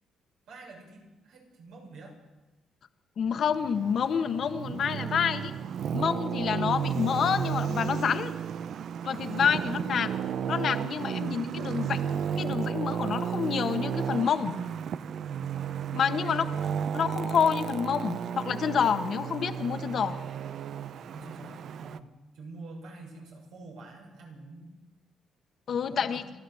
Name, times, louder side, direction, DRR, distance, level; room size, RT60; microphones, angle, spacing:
voice 1, 0.5-2.2 9.2-9.6 15.4-16.9 20.9-22.1 22.3-24.8 25.9-26.3, right 2 dB, 85° right, 0 dB, 6.8 m, -47 dB
voice 2, 3.2-5.5 5.9-8.3 9.0-10.1 10.5-14.5 15.9-16.4 16.9-20.2 25.7-26.2, left 7 dB, 60° left, 9 dB, 1.5 m, -28 dB
Traffic noise roadway noise, 3.5-22.0, right 8 dB, 65° right, 0.7 m, -33 dB
27.5 x 12.0 x 7.9 m, 1.1 s
cardioid pair, 90°, 0 cm